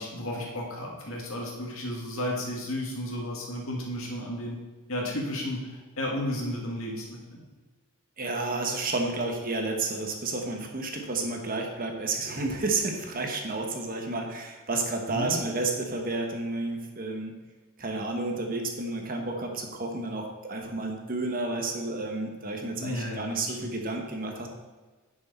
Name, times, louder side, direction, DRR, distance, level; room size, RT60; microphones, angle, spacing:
voice 1, 0.0-4.6 4.9-7.4 15.1-15.4 22.8-23.7, left 1 dB, 65° left, -1 dB, 2.3 m, -33 dB
voice 2, 8.2-17.3 17.8-24.5, right 2 dB, 40° right, 2 dB, 1.2 m, -31 dB
10.5 x 6.4 x 4.3 m, 1.3 s
head